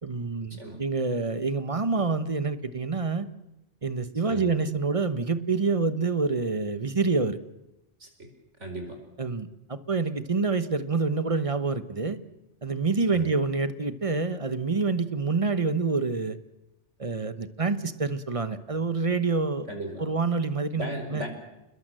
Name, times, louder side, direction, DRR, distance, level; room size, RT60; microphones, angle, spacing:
voice 1, 0.0-3.3 3.8-7.4 9.2-12.2 12.6-16.4 17.0-19.7 20.0-21.2, right 4 dB, 30° right, 12 dB, 1.1 m, -27 dB
voice 2, 8.6-9.0 13.1-13.3 19.7-20.1 20.7-21.3, right 1 dB, 90° right, 5 dB, 5.1 m, -36 dB
28.0 x 21.0 x 7.7 m, 0.92 s
omnidirectional pair, 1.2 m